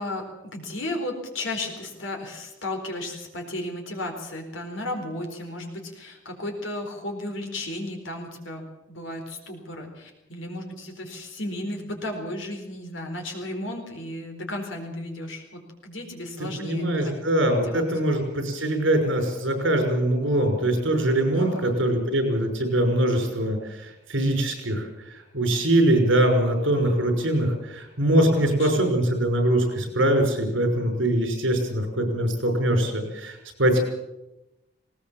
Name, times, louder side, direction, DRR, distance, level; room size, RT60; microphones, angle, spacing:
voice 1, 0.0-17.2 17.6-17.8 21.2-21.8 28.4-28.7, left 1 dB, 75° left, 3 dB, 4.4 m, -34 dB
voice 2, 16.6-24.9 25.3-33.8, right 1 dB, 70° right, 4 dB, 5.8 m, -23 dB
19.5 x 18.5 x 7.4 m, 0.95 s
head